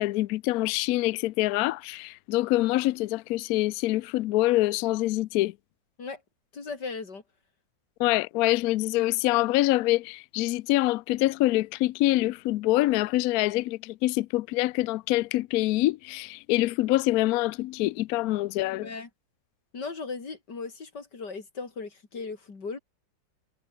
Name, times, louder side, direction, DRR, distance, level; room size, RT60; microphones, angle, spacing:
voice 1, 0.0-5.5 8.0-18.9, left 17 dB, 90° left, 0.8 m, -25 dB
voice 2, 6.5-7.2 18.7-19.1 19.7-22.8, left 4 dB, 60° left, 4.0 m, -37 dB
omnidirectional pair, 2.1 m